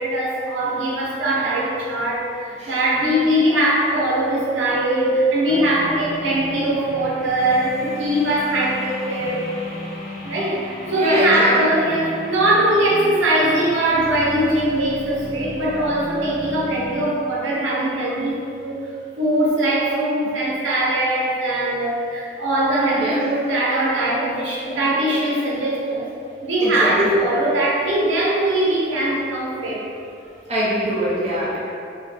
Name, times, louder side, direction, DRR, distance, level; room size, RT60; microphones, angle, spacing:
voice 1, 0.0-9.5 10.2-18.8 19.2-26.1 26.4-29.8, right 1 dB, 75° right, -4 dB, 0.6 m, -21 dB
sound 1, 5.5-17.1, left 1 dB, 5° left, 0.6 m, -34 dB
voice 2, 10.8-11.6 23.0-23.2 26.6-27.2 30.5-31.6, right 1 dB, 35° right, -8 dB, 0.7 m, -23 dB
2.2 x 2.1 x 3.3 m, 2.5 s
head